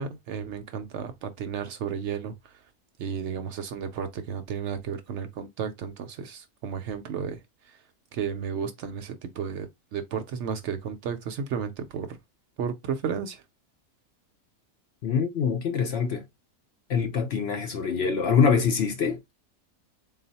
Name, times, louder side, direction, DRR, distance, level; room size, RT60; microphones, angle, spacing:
voice 1, 0.0-2.6 3.0-7.8 8.1-12.2 12.6-13.4, right 7 dB, 65° right, 0.8 m, -33 dB
voice 2, 15.0-16.3 16.9-19.3, left 6 dB, 60° left, 0.7 m, -24 dB
4.0 x 2.2 x 4.0 m
omnidirectional pair, 1.4 m